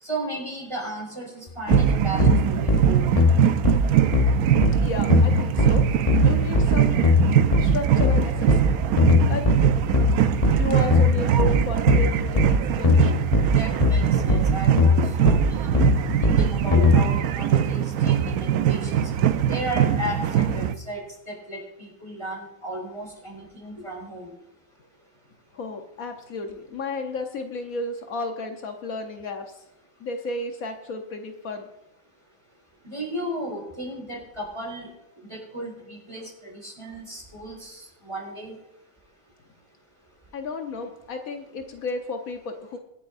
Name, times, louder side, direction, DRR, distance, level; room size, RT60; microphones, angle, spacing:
voice 1, 0.0-3.0 13.4-15.8 16.2-19.1 19.5-24.3 32.8-34.9 35.3-38.5, right 1 dB, 20° right, -2 dB, 5.0 m, -34 dB
sound 1, 1.7-17.0, left 3 dB, 30° left, 0.9 m, -20 dB
sound 2, 1.7-20.7, right 9 dB, 80° right, 1.1 m, -22 dB
voice 2, 4.8-5.9 6.2-7.0 7.6-8.8 9.3-9.4 10.6-13.1 25.5-29.6 30.0-31.7 40.3-42.8, left 3 dB, 70° left, 5 dB, 1.3 m, -32 dB
25.0 x 8.4 x 2.6 m, 0.89 s
omnidirectional pair, 1.6 m